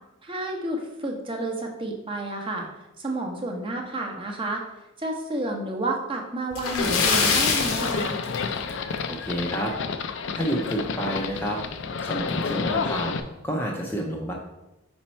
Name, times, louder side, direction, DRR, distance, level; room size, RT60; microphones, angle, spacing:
voice 1, 0.2-2.7 3.0-4.6 5.0-8.2, right 2 dB, 25° right, 1 dB, 0.8 m, -30 dB
Splash splatter, 6.5-8.9 9.2-9.4 9.8-9.9 11.3-11.4 11.8-11.9 12.5-12.7, left 5 dB, 80° left, 0.9 m, -25 dB
Livestock farm animals working animals, 6.8-13.2, left 5 dB, 55° left, 0.4 m, -30 dB
voice 2, 9.1-9.7 10.3-11.6 12.0-13.1 13.4-14.3, right 1 dB, 10° left, -1 dB, 0.6 m, -29 dB
5.1 x 4.4 x 4.3 m, 0.97 s
head